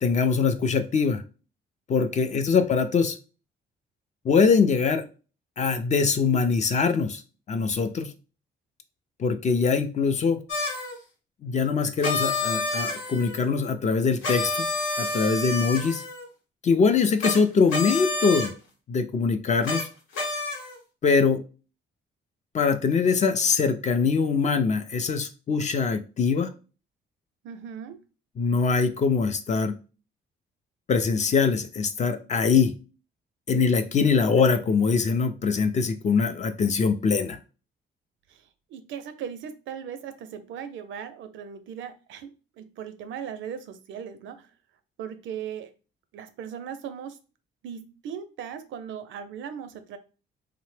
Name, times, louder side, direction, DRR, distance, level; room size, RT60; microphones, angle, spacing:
voice 1, 0.0-1.2 1.9-3.2 4.2-5.0 5.6-7.2 7.5-8.1 9.2-10.4 11.4-14.7 15.0-16.0 16.6-18.5 18.9-19.9 21.0-21.4 22.5-26.5 28.4-29.7 30.9-32.7 33.5-37.4, left 5 dB, 35° left, 0.4 m, -23 dB
voice 2, 2.3-2.8 27.4-28.0 34.4-34.5 38.3-44.5 45.0-45.7 46.1-47.2 47.6-50.0, right 8 dB, 75° right, 0.5 m, -38 dB
sound 1, 10.5-10.9 12.0-13.4 14.2-16.3 17.2-17.4 17.7-18.5 19.6-19.8 20.1-20.8, left 3 dB, 85° left, 0.9 m, -29 dB
2.8 x 2.0 x 3.2 m
cardioid pair, 90°, 20 cm